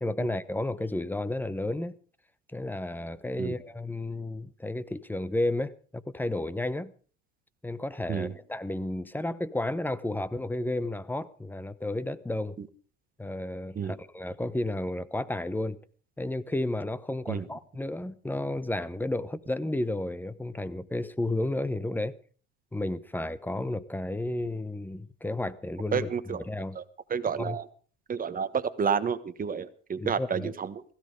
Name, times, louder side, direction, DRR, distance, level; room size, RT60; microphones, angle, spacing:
voice 1, 0.0-2.0 2.5-6.9 7.6-12.6 13.2-15.8 16.2-22.1 22.7-26.1 26.5-26.8 27.4-27.6 30.0-30.5, left 1 dB, 5° left, 0.9 m, -32 dB
voice 2, 25.9-26.4 26.7-26.8 27.1-27.7 28.1-30.8, right 6 dB, 25° right, 1.4 m, -30 dB
16.5 x 16.0 x 5.0 m
supercardioid pair, 120°, 36 cm